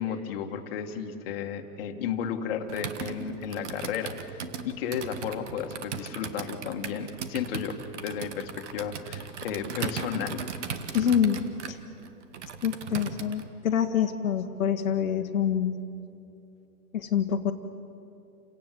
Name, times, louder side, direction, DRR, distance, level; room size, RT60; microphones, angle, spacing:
voice 1, 0.0-4.4 4.6-10.4, left 7 dB, 40° left, 4 dB, 1.9 m, -33 dB
Computer keyboard, 2.7-13.5, right 6 dB, 50° right, 1.7 m, -38 dB
voice 2, 10.9-11.4 11.7-11.8 12.6-15.8 16.9-17.5, left 8 dB, 60° left, 3 dB, 1.5 m, -26 dB
29.5 x 17.5 x 7.7 m, 2.7 s
hypercardioid pair, 150°, 45 cm